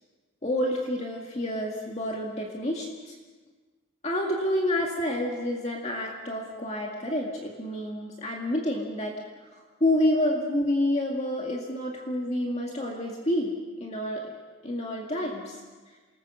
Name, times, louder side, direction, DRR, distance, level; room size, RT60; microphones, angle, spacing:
voice 1, 0.4-3.1 4.0-9.1 9.8-14.4 14.6-15.6 15.9-16.0, left 1 dB, 30° left, -1 dB, 2.1 m, -28 dB
28.5 x 19.5 x 6.3 m, 1.4 s
head